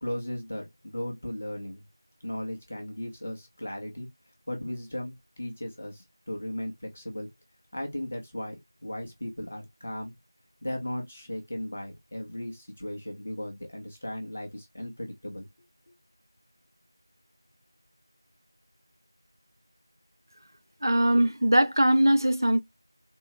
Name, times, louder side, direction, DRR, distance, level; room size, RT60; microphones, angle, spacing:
voice 1, 0.0-1.8 2.2-4.1 4.5-7.3 7.7-10.1 10.6-15.5, left 1 dB, 15° left, 0.7 m, -36 dB
voice 2, 20.8-22.6, right 1 dB, 55° right, 0.9 m, -21 dB
4.4 x 3.5 x 2.9 m
figure-of-eight pair, 175°, 2 cm